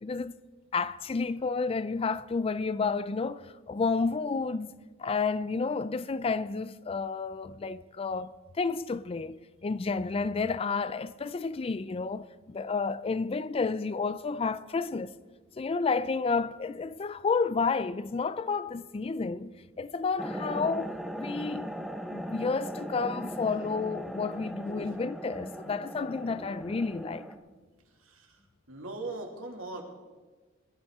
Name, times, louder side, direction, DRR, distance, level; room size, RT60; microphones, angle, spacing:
voice 1, 0.0-0.3 0.7-4.7 5.0-15.1 15.6-21.7 22.1-27.3, left 4 dB, 25° left, 0.3 m, -31 dB
sound 1, 20.2-27.4, equal, ahead, 0.7 m, -38 dB
voice 2, 28.0-28.4 28.7-29.8, right 2 dB, 85° right, 2.2 m, -40 dB
20.5 x 12.0 x 3.6 m
head